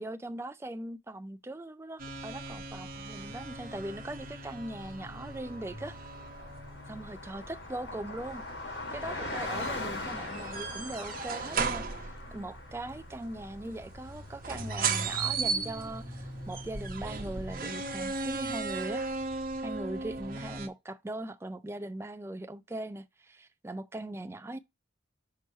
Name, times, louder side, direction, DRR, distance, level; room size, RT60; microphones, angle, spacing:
voice 1, 0.0-6.0 6.9-8.4 8.9-11.9 12.3-19.1 19.6-24.6, right 1 dB, 15° right, 0.3 m, -40 dB
sound 1, 2.0-20.7, right 4 dB, 45° right, 0.8 m, -37 dB
Car passing by, 2.8-18.8, left 2 dB, 60° left, 1.4 m, -42 dB
5.7 x 3.1 x 5.5 m
head